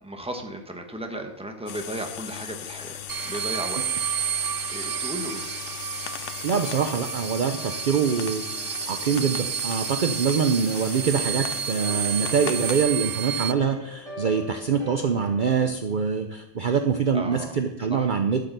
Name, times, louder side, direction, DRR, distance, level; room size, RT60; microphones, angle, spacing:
voice 1, 0.0-3.9 4.7-5.5 17.1-17.6 17.9-18.1, right 1 dB, 5° right, 4 dB, 1.2 m, -35 dB
sound 1, 1.7-12.9, left 11 dB, 80° left, 1.0 m, -38 dB
sound 2, 3.1-13.5, right 9 dB, 70° right, 0.4 m, -31 dB
voice 2, 6.4-18.4, right 6 dB, 50° right, 7 dB, 0.8 m, -24 dB
sound 3, 10.7-15.7, equal, 25° right, 3.9 m, -43 dB
12.0 x 6.7 x 6.7 m, 0.86 s
omnidirectional pair, 1.2 m